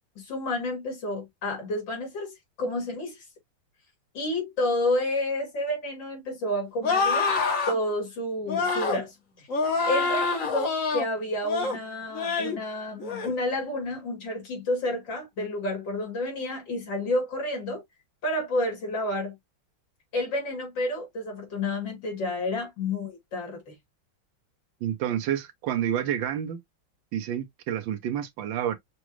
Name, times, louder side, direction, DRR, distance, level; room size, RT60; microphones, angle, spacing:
voice 1, 0.2-3.2 4.1-7.3 7.7-9.5 9.9-17.8 18.2-19.4 20.1-23.7, left 1 dB, 65° left, 3.1 m, -30 dB
sound 1, 6.8-7.8 8.5-9.0 9.5-11.1 11.4-11.8 12.1-12.6 13.0-13.3, left 4 dB, 45° left, 1.6 m, -26 dB
voice 2, 24.8-26.6 27.1-28.8, right 10 dB, 75° right, 1.4 m, -29 dB
6.1 x 2.4 x 3.0 m
omnidirectional pair, 2.1 m